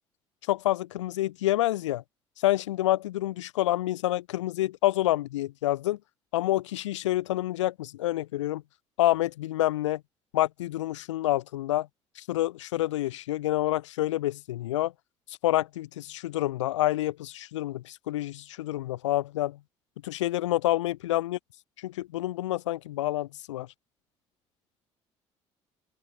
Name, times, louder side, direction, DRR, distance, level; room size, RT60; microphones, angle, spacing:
voice 1, 0.5-2.0 2.4-6.0 6.3-8.6 9.0-10.0 10.3-11.9 12.2-14.9 15.4-19.6 20.0-21.4 21.8-23.7, left 15 dB, 80° left, 0.5 m, -28 dB
figure-of-eight pair, 50°, 15 cm